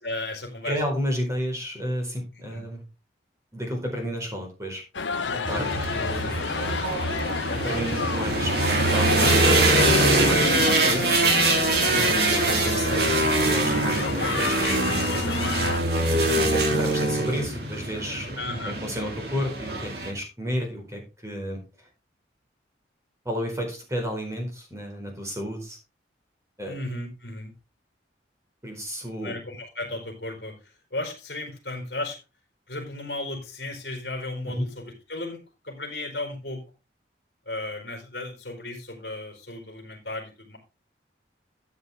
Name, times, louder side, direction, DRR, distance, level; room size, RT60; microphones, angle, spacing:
voice 1, 0.0-0.8 2.3-2.6 5.2-6.0 11.8-12.3 18.4-18.8 26.6-27.5 29.2-30.5 30.9-32.2 32.7-36.6 37.5-40.6, left 2 dB, 55° left, 1 dB, 4.1 m, -35 dB
voice 2, 0.6-2.8 3.5-4.8 5.5-6.3 7.5-11.3 12.0-15.2 16.2-21.6 23.2-25.8 26.6-26.8 28.6-29.3 34.5-34.6, equal, 15° right, 2 dB, 4.5 m, -32 dB
sound 1, 4.9-15.8, left 5 dB, 80° left, 0.8 m, -30 dB
sound 2, 5.5-20.1, right 2 dB, 55° right, 3.2 m, -23 dB
13.5 x 8.1 x 3.6 m, 0.28 s
head